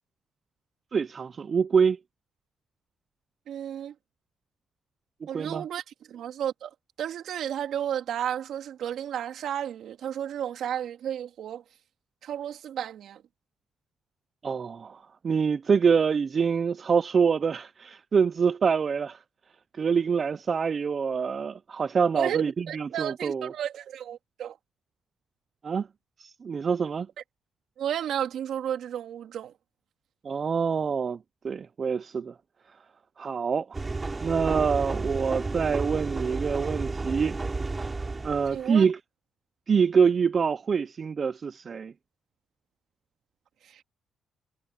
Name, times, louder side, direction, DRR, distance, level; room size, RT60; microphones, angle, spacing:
voice 1, 0.9-2.0 5.3-5.6 14.4-19.2 19.7-23.5 25.6-25.9 26.2-27.1 30.2-32.3 33.2-33.8 34.2-37.4 38.2-39.0 39.7-41.9, right 6 dB, 45° right, 0.6 m, -25 dB
voice 2, 3.5-3.9 5.3-5.8 6.1-11.6 12.2-13.2 22.1-24.6 27.8-29.5 38.5-38.8 43.6-43.8, right 10 dB, 70° right, 3.2 m, -33 dB
sound 1, 33.7-38.7, right 3 dB, 25° right, 3.2 m, -32 dB
cardioid pair, 90°, 0 cm